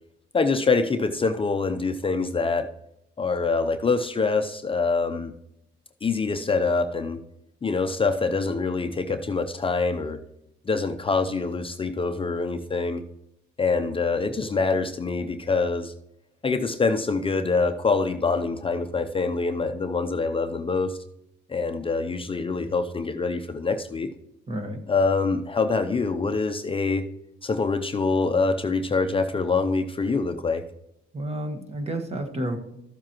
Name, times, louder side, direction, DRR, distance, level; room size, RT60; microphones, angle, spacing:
voice 1, 0.3-2.7 3.2-5.3 6.0-7.2 7.6-10.2 10.7-13.0 13.6-15.9 16.4-21.0 21.5-24.1 24.9-27.1 27.4-30.6, left 4 dB, 25° left, 7 dB, 0.6 m, -25 dB
voice 2, 24.5-24.8 31.1-32.6, right 1 dB, 30° right, 5 dB, 1.5 m, -30 dB
13.5 x 7.2 x 3.0 m, 0.84 s
cardioid pair, 90°, 20 cm